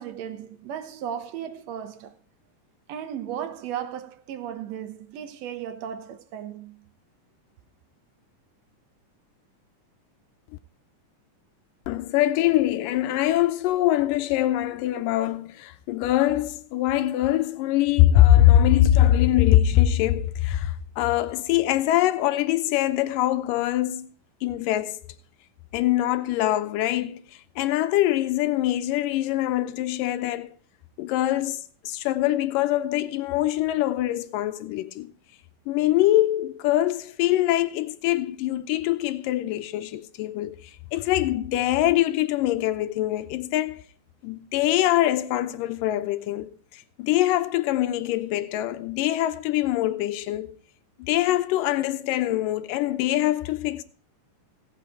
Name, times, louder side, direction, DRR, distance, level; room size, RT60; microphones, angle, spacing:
voice 1, 0.0-2.1 2.9-6.9, right 9 dB, 65° right, 1.8 m, -35 dB
voice 2, 11.9-24.1 24.4-25.0 25.7-27.2 27.6-30.5 31.0-35.1 35.7-43.8 44.2-50.5 51.0-53.8, left 14 dB, 85° left, 2.4 m, -23 dB
17.5 x 5.9 x 4.9 m
omnidirectional pair, 3.8 m